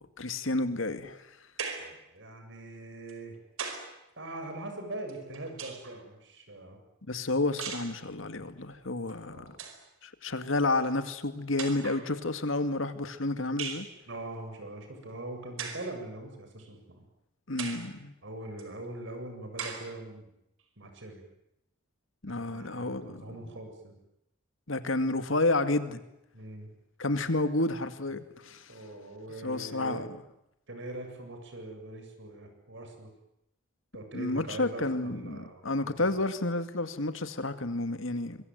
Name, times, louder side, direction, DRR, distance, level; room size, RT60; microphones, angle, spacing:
voice 1, 0.2-1.2 7.1-9.6 10.0-13.9 17.5-18.1 22.2-23.3 24.7-26.0 27.0-28.7 29.4-30.2 34.1-38.4, left 2 dB, 65° left, 10 dB, 2.2 m, -30 dB
sound 1, 1.6-2.0 3.1-4.0 5.1-6.0 7.6-8.0 9.1-9.2 9.5-9.8 10.8-10.9 11.6-12.1 13.6-13.9 15.6-15.9 16.6-16.7 17.6-17.9 18.6-18.7 19.6-19.9, right 6 dB, 80° right, 5.1 m, -38 dB
voice 2, 1.8-3.4 4.2-6.8 9.3-9.6 14.1-17.0 18.2-20.3 20.8-21.2 22.3-24.0 26.3-26.7 28.1-28.2 28.7-30.1 30.7-33.1 33.9-36.2, right 2 dB, 60° right, 5 dB, 7.8 m, -42 dB
26.0 x 23.5 x 9.4 m, 0.84 s
head